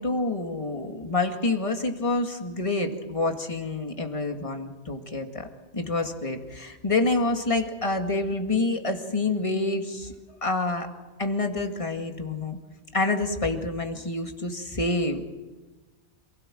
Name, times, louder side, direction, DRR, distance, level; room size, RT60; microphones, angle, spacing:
voice 1, 0.0-5.5 5.7-10.9 11.2-12.6 12.9-15.2, left 2 dB, 30° left, 4 dB, 2.2 m, -27 dB
27.5 x 17.5 x 7.7 m, 1.2 s
omnidirectional pair, 1.1 m